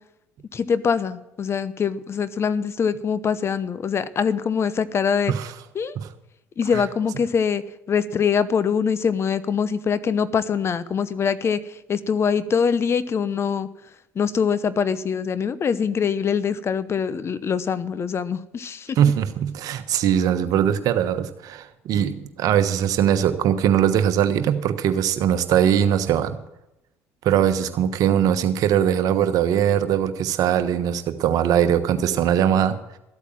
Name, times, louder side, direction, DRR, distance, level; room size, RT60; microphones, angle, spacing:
voice 1, 0.5-5.3 5.7-5.9 6.6-7.6 7.9-11.6 11.9-13.7 14.2-19.0, left 6 dB, 40° left, 15 dB, 0.9 m, -23 dB
voice 2, 19.0-26.4 27.2-32.8, right 9 dB, 60° right, 10 dB, 1.2 m, -21 dB
14.0 x 8.3 x 7.4 m, 0.88 s
hypercardioid pair, 65°, 7 cm